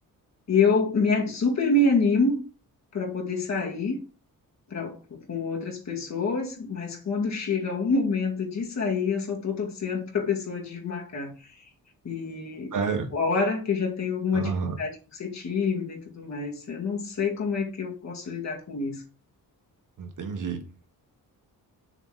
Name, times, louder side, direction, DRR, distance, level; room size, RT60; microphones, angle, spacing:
voice 1, 0.5-2.4 2.9-4.0 4.7-11.6 12.0-12.7 13.1-14.5 14.8-19.0, left 4 dB, 50° left, 2.2 m, -27 dB
voice 2, 12.7-13.1 14.3-14.8 20.0-20.6, right 5 dB, 60° right, 1.6 m, -29 dB
7.0 x 4.2 x 5.8 m
wide cardioid pair, 165°, 36 cm